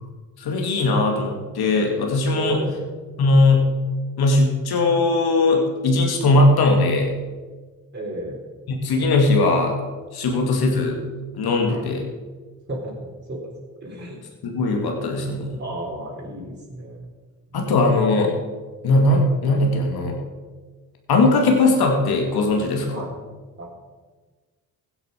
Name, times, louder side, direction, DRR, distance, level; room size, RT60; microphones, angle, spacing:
voice 1, 0.4-2.6 3.2-3.7 4.2-7.1 8.7-9.7 10.1-11.0 11.4-12.0 14.4-15.6 17.5-18.3 18.8-20.2 21.1-23.0, left 2 dB, 65° left, 1 dB, 2.5 m, -19 dB
voice 2, 2.3-2.8 7.9-8.4 11.7-11.9 12.7-12.9 13.3-13.5 13.8-14.2 15.6-17.0 17.5-18.1 22.9-23.1 23.6-23.8, right 1 dB, 25° right, -5 dB, 4.0 m, -33 dB
15.5 x 8.5 x 5.3 m, 1.4 s
hypercardioid pair, 50°, 41 cm